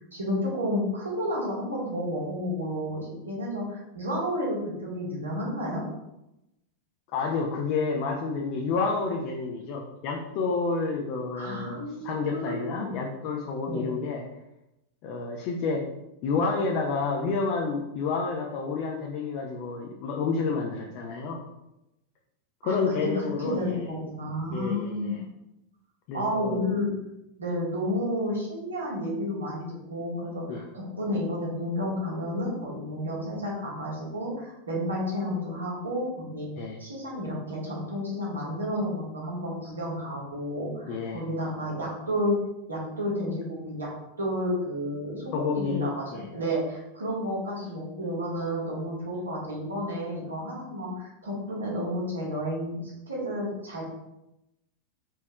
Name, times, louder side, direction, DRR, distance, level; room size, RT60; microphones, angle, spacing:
voice 1, 0.0-5.8 11.3-12.9 13.7-13.8 22.6-23.1 23.4-25.2 26.1-26.9 27.4-42.4 42.7-43.9 44.2-52.8 53.1-53.8, equal, 75° right, -4 dB, 1.3 m, -31 dB
voice 2, 7.1-14.2 15.0-15.9 16.2-21.4 22.6-23.8 24.5-25.2 26.1-26.6 30.5-30.6 36.6-36.8 40.9-41.2 45.3-46.3, left 4 dB, 45° left, 0 dB, 0.5 m, -29 dB
4.4 x 3.1 x 2.2 m, 0.89 s
figure-of-eight pair, 90°, 0 cm